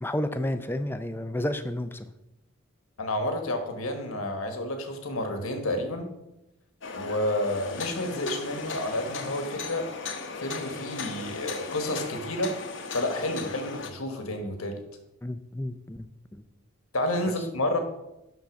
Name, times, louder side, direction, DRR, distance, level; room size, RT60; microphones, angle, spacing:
voice 1, 0.0-2.0 15.2-16.4, left 1 dB, 10° left, 10 dB, 0.4 m, -31 dB
voice 2, 3.0-6.1 6.9-9.8 10.4-12.5 12.9-14.8 16.9-17.8, left 1 dB, 80° left, 5 dB, 1.4 m, -30 dB
sound 1, 6.8-13.9, left 4 dB, 55° left, 0.9 m, -37 dB
11.5 x 3.9 x 6.0 m, 0.92 s
head